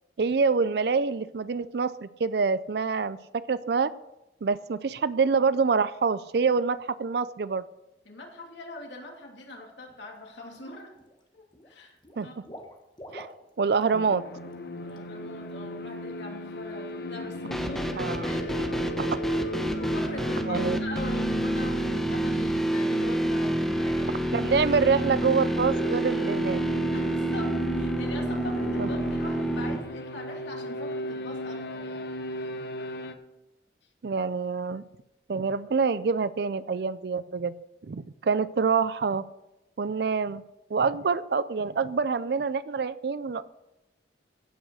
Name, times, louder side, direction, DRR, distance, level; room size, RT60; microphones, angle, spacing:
voice 1, 0.2-3.2 3.5-3.9 4.4-7.6 12.2-12.3 13.1-13.3 13.6-14.2 18.0-18.4 20.5-20.8 24.3-26.6 28.8-28.9 34.0-34.8 35.3-37.5 37.9-39.2 39.8-40.4 40.7-43.5, right 5 dB, 60° right, 15 dB, 0.4 m, -26 dB
voice 2, 8.0-10.9 11.3-12.5 14.7-18.8 19.6-24.3 26.9-32.4, left 1 dB, 80° left, 0 dB, 2.8 m, -42 dB
Water / Liquid, 9.9-10.2 10.5-11.2 11.5-14.0 14.3-14.5 14.9-15.0, left 1 dB, 25° left, 1.4 m, -47 dB
sound 1, 13.9-33.1, left 1 dB, 55° left, 1.1 m, -36 dB
sound 2, 17.5-29.8, right 1 dB, ahead, 1.1 m, -28 dB
16.0 x 6.4 x 6.3 m, 0.94 s
head